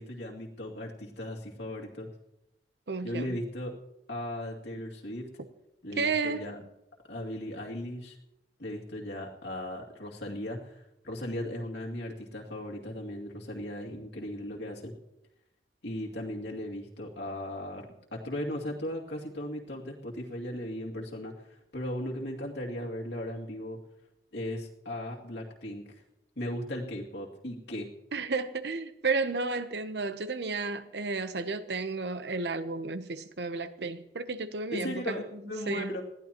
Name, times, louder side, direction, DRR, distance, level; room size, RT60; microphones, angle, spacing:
voice 1, 0.0-2.1 3.0-3.7 4.1-5.2 5.8-6.6 7.1-8.2 8.6-14.9 15.8-23.8 24.3-25.8 26.4-27.9 34.7-36.0, left 1 dB, 75° left, 2.5 m, -37 dB
voice 2, 2.9-3.4 6.0-6.5 28.1-35.4 35.7-35.9, right 4 dB, 70° right, 0.9 m, -32 dB
20.5 x 14.5 x 3.0 m
head